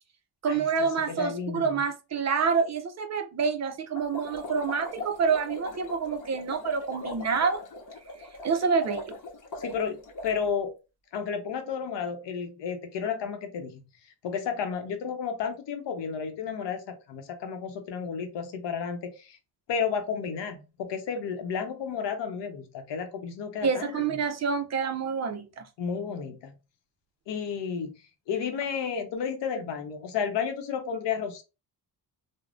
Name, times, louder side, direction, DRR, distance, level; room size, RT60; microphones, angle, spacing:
voice 1, 0.4-7.6 8.4-9.2 23.6-25.6, right 5 dB, 40° right, 0.4 m, -27 dB
voice 2, 1.1-1.8 9.6-10.0 10.2-10.7 11.1-13.8 14.2-19.4 19.7-24.0 25.8-26.5 27.3-27.9 28.3-31.4, left 6 dB, 85° left, 0.7 m, -32 dB
sound 1, 3.9-10.4, left 2 dB, 50° left, 0.8 m, -40 dB
3.3 x 2.1 x 2.5 m
wide cardioid pair, 130°, 41 cm